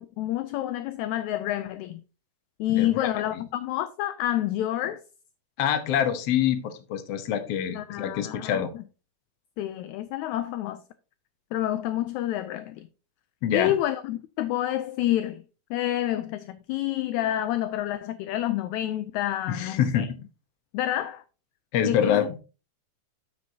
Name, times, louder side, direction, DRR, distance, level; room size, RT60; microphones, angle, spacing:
voice 1, 0.0-2.0 2.6-5.0 7.7-8.6 9.6-10.8 11.5-12.9 13.5-15.4 15.7-20.1 20.7-21.2 21.9-22.2, left 13 dB, 80° left, 1.8 m, -28 dB
voice 2, 2.7-3.4 5.6-8.7 13.4-13.7 19.5-20.2 21.7-22.3, left 9 dB, 65° left, 1.8 m, -26 dB
9.0 x 8.3 x 2.8 m
omnidirectional pair, 3.6 m